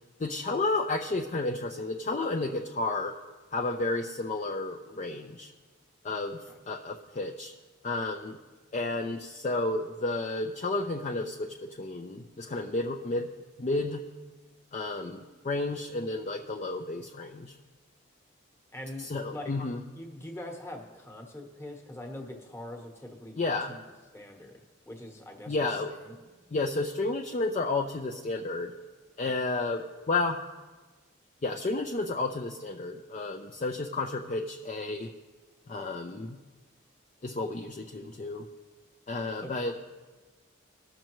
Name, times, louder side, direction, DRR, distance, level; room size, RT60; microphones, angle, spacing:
voice 1, 0.2-3.1 3.5-5.5 6.0-7.5 7.8-8.4 8.7-11.5 11.8-13.3 13.6-14.0 14.7-17.5 19.0-19.8 23.4-23.7 25.5-25.9 26.5-28.7 29.2-30.4 31.4-35.1 35.7-36.4 37.2-38.4 39.1-39.8, left 2 dB, 35° left, 1 dB, 0.4 m, -31 dB
voice 2, 18.7-19.7 19.9-23.4 23.7-23.8 24.1-24.6 24.9-25.5 25.9-26.3 39.4-39.5, left 1 dB, 15° left, 2 dB, 1.1 m, -43 dB
18.5 x 6.3 x 3.1 m, 1.3 s
head